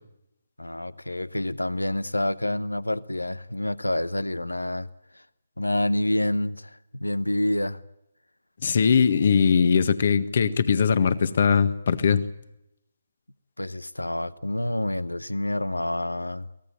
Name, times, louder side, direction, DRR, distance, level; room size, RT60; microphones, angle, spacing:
voice 1, 0.6-4.9 5.1-5.2 5.6-7.8 13.6-16.5, left 1 dB, 90° left, 0.9 m, -28 dB
voice 2, 8.6-12.2, left 6 dB, 50° left, 1.6 m, -20 dB
24.0 x 18.5 x 8.7 m
figure-of-eight pair, 145°, 0 cm